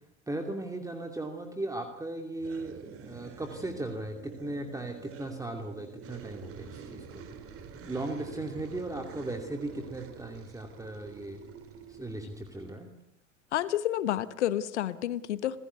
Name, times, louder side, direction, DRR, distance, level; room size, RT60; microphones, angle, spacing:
voice 1, 0.3-7.2 7.8-11.4 11.9-12.9, right 2 dB, 10° right, 5 dB, 2.6 m, -37 dB
sound 1, 2.4-12.7, right 6 dB, 40° right, 3.6 m, -47 dB
voice 2, 13.5-15.6, left 12 dB, 70° left, 16 dB, 1.2 m, -30 dB
27.5 x 16.0 x 8.2 m, 0.82 s
figure-of-eight pair, 80°, 36 cm